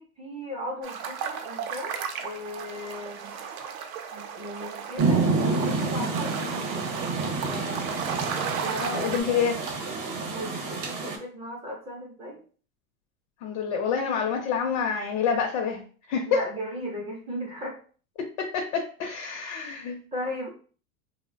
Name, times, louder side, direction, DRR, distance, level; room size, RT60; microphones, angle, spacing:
voice 1, 0.0-3.4 4.1-6.9 7.5-8.1 8.6-9.2 10.3-12.4 16.3-17.8 20.1-20.5, equal, 15° right, -2 dB, 0.4 m, -37 dB
sound 1, 0.8-9.2, right 7 dB, 75° right, 0.6 m, -35 dB
Rain, 5.0-11.2, right 3 dB, 45° right, 0.8 m, -28 dB
voice 2, 8.8-9.6 13.4-15.8 16.1-16.4 18.4-20.0, left 6 dB, 70° left, 2 dB, 0.6 m, -27 dB
2.4 x 2.1 x 2.5 m, 0.41 s
supercardioid pair, 135°, 42 cm